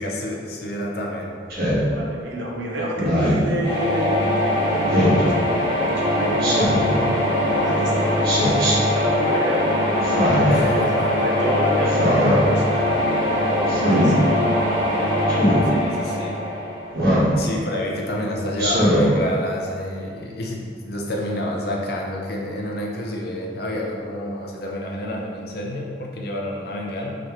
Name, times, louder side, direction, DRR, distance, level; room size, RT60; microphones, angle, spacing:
voice 1, 0.0-1.3 10.5-11.3 15.6-16.4 17.4-27.1, left 1 dB, 55° left, -1 dB, 0.6 m, -29 dB
Speech synthesizer, 1.5-1.8 3.0-3.5 4.9-5.2 6.4-6.9 8.2-8.7 10.0-10.6 11.9-12.4 13.7-14.1 15.3-15.6 16.9-17.3 18.6-19.1, equal, 55° right, 1.3 m, -20 dB
voice 2, 1.8-14.9 15.3-16.3, right 1 dB, 75° right, -3 dB, 0.8 m, -30 dB
sound 1, 3.6-17.5, left 1 dB, 25° left, 1.3 m, -22 dB
5.2 x 3.1 x 3.0 m, 2.2 s
head